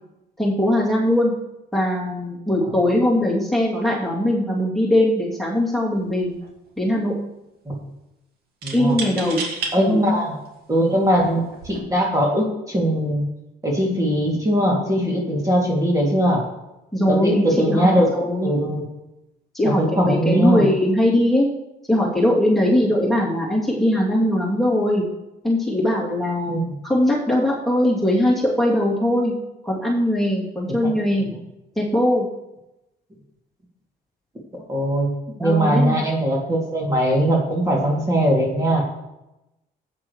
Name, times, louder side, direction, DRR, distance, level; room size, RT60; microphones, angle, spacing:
voice 1, 0.4-1.3 1.7-6.3 6.8-7.1 8.7-9.4 9.8-10.0 16.9-18.6 19.5-21.5 21.9-25.0 25.4-26.6 26.8-29.3 29.6-31.3 31.8-32.3 35.4-36.0, left 1 dB, ahead, -6 dB, 2.8 m, -20 dB
sound 1, 5.5-5.7 6.0-6.7 8.6-9.7 10.5-10.6 11.5-11.8, right 4 dB, 65° right, 2.3 m, -31 dB
voice 2, 8.6-9.0 9.7-10.4 10.7-13.2 13.6-16.4 17.1-18.1 18.4-18.8 19.8-20.6 26.5-26.6 30.8-30.9 34.7-35.1 35.4-38.8, equal, 20° right, -2 dB, 2.7 m, -20 dB
13.5 x 9.0 x 3.2 m, 0.92 s
cardioid pair, 110°, 17 cm